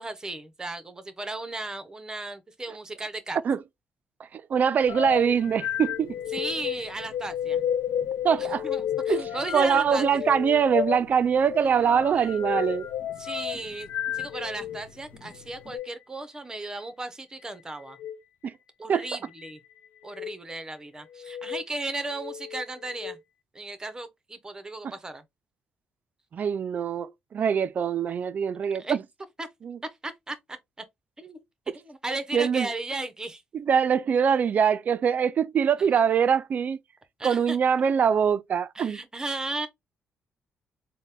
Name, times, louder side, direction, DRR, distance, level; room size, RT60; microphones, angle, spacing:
voice 1, 0.0-3.4 6.3-7.6 8.4-10.1 11.6-12.4 13.2-13.9 14.1-18.0 18.8-19.6 20.0-23.2 23.5-25.2 28.8-29.0 29.4-29.5 29.8-30.8 31.2-31.4 31.7-33.4 37.2-37.6 38.7-39.7, right 2 dB, 15° right, 0.8 m, -35 dB
voice 2, 4.3-6.1 8.2-8.6 9.1-9.2 9.5-12.9 18.4-18.5 18.9-19.0 26.3-29.0 29.6-29.8 32.3-32.7 33.5-36.8 37.2-39.0, right 7 dB, 50° right, 0.4 m, -23 dB
sound 1, 4.8-15.8, left 5 dB, 60° left, 1.0 m, -51 dB
sound 2, 4.9-14.8 15.6-15.9 17.9-18.2 19.0-19.5 20.0-20.4 21.1-21.6 22.1-23.2, left 10 dB, 85° left, 0.4 m, -32 dB
4.0 x 2.1 x 3.5 m
cardioid pair, 105°, 4 cm